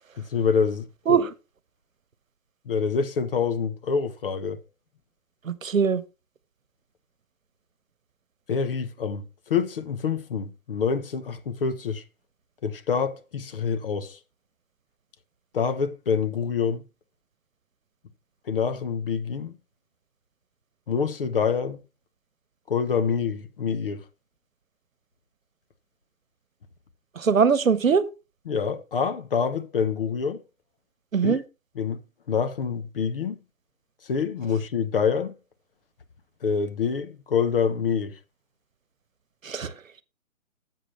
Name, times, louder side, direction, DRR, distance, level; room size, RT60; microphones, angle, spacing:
voice 1, 0.2-0.9 2.7-4.6 8.5-12.0 12.6-14.2 15.5-16.8 18.5-19.6 20.9-21.8 22.7-24.0 28.5-30.4 31.2-31.4 31.8-32.0 32.3-33.4 34.0-35.3 36.4-38.2, left 6 dB, 40° left, 1.0 m, -26 dB
voice 2, 5.4-6.0 27.2-28.0 31.1-31.4 39.4-39.7, right 6 dB, 70° right, 1.1 m, -21 dB
11.0 x 7.5 x 3.2 m
figure-of-eight pair, 140°, 41 cm